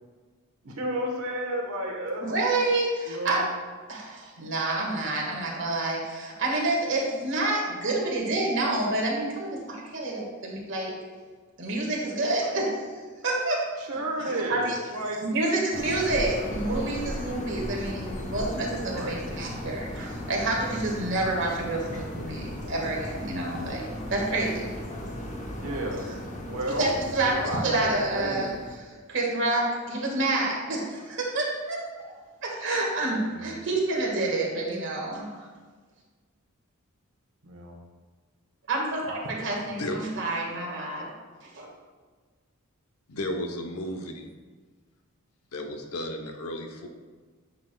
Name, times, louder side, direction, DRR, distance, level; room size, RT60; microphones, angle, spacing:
voice 1, 0.6-2.3 3.1-3.5 13.8-15.2 18.9-19.3 25.5-26.1 26.5-26.9 27.2-28.5 33.3-33.5 37.4-37.7, right 1 dB, 80° right, 1 dB, 1.2 m, -32 dB
voice 2, 2.2-3.4 3.9-11.0 11.6-12.9 13.2-13.7 14.2-14.8 15.2-23.8 24.1-24.7 26.8-28.5 29.1-32.1 32.4-35.5 38.7-41.1 41.5-41.7, right 2 dB, 55° right, -2 dB, 1.7 m, -28 dB
sound 1, 15.7-28.8, equal, 35° left, 0.9 m, -36 dB
voice 3, 43.1-44.3 45.5-46.9, left 1 dB, 85° left, 4 dB, 0.9 m, -33 dB
9.7 x 6.0 x 2.3 m, 1.4 s
head